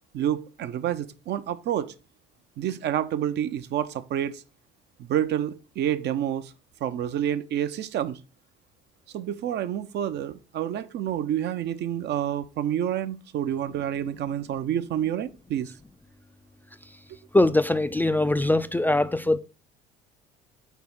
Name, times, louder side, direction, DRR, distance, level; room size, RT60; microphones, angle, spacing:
voice 1, 0.1-1.9 2.6-4.4 5.0-6.5 6.8-8.2 9.1-15.7, right 10 dB, 55° right, 0.6 m, -28 dB
voice 2, 17.3-19.4, left 2 dB, 10° left, 0.4 m, -22 dB
4.6 x 4.1 x 5.5 m
hypercardioid pair, 70°, 21 cm